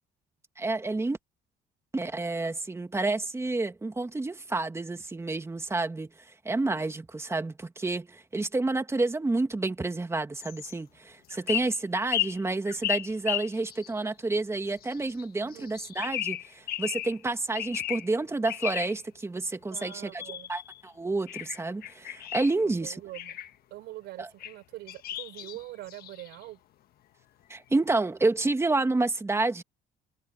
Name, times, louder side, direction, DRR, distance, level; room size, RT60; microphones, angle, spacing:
voice 1, 0.6-1.2 1.9-6.1 6.4-20.2 20.5-23.0 24.2-24.3 27.5-29.6, right 2 dB, 15° right, 2.3 m, -29 dB
sound 1, 10.4-10.8 11.3-14.0 14.8-15.2 15.5-17.2 17.5-18.1 18.4-19.0 19.8-20.8 21.3-22.5 23.1-23.5 24.4-24.5 24.9-26.4, left 13 dB, 65° left, 1.4 m, -34 dB
voice 2, 15.4-15.7 19.7-20.5 22.6-23.4 23.7-26.6, right 17 dB, 85° right, 6.1 m, -44 dB
cardioid pair, 110°, 17 cm